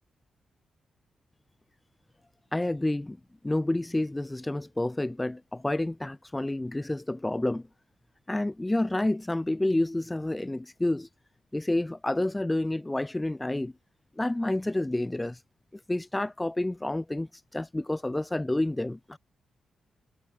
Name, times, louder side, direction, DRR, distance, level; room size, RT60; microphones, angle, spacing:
voice 1, 2.5-3.2 3.4-7.6 8.3-11.1 11.5-13.7 14.2-15.4 15.9-19.2, left 1 dB, 15° left, 2.7 m, -29 dB
hypercardioid pair, 40°, 0 cm